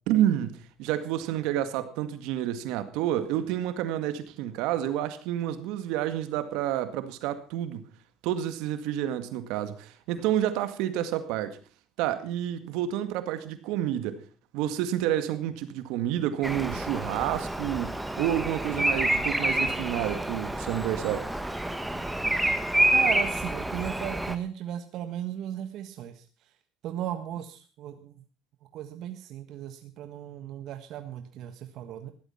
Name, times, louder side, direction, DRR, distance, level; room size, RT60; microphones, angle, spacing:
voice 1, 0.1-7.8 8.2-11.6 12.0-14.2 14.5-21.3, right 11 dB, 80° right, 2.0 m, -29 dB
Bird vocalization bird call bird song, 16.4-24.4, right 1 dB, 5° right, 1.7 m, -28 dB
voice 2, 22.9-26.5 26.8-28.2 28.7-32.1, right 11 dB, 65° right, 1.5 m, -36 dB
16.0 x 12.0 x 5.7 m
supercardioid pair, 105°, 0 cm